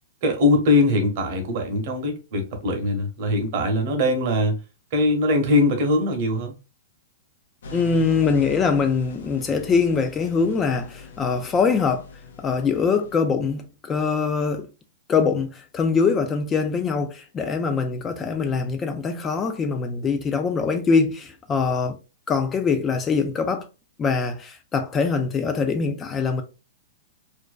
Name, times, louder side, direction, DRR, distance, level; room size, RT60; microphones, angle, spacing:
voice 1, 0.2-4.6 4.9-6.5, left 2 dB, 55° right, 0.8 m, -21 dB
sound 1, 7.6-13.1, equal, 75° left, 0.6 m, -40 dB
voice 2, 7.7-12.1 12.4-14.7 15.1-22.0 22.3-23.7 24.0-26.4, left 5 dB, 20° left, 0.3 m, -23 dB
2.5 x 2.1 x 2.3 m
hypercardioid pair, 135°, 0 cm